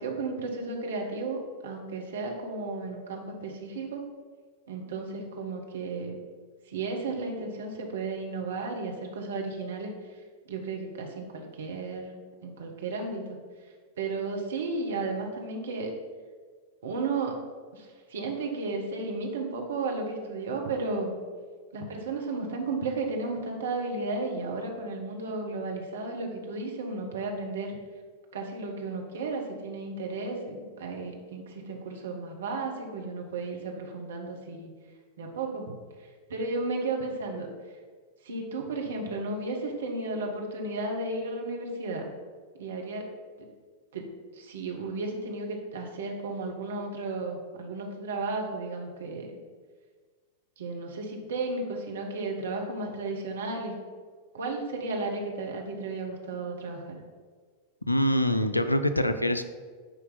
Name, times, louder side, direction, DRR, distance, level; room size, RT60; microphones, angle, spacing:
voice 1, 0.0-4.0 4.7-6.2 6.7-9.9 10.5-12.1 12.4-13.4 14.0-15.9 16.8-17.4 17.7-21.2 21.7-27.8 28.3-34.7 35.2-35.7 36.3-37.5 38.2-42.1 42.6-43.1 43.4-43.5 43.9-44.1 44.3-49.3 50.6-53.7 54.3-57.0, right 3 dB, 65° right, 1 dB, 1.2 m, -33 dB
voice 2, 57.9-59.4, left 1 dB, 85° left, 10 dB, 0.4 m, -24 dB
9.2 x 3.3 x 5.5 m, 1.5 s
figure-of-eight pair, 90°, 0 cm